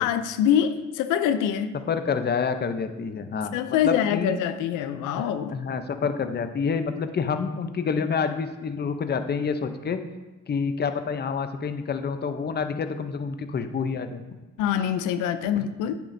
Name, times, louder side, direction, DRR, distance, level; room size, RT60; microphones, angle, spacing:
voice 1, 0.0-1.8 3.5-5.6 14.6-16.0, left 9 dB, 90° left, 10 dB, 0.5 m, -25 dB
voice 2, 1.9-4.4 5.2-10.0 10.5-14.2 15.6-15.7, left 5 dB, 35° left, 9 dB, 0.7 m, -28 dB
9.1 x 7.4 x 2.7 m, 1.2 s
cardioid pair, 90°, 30 cm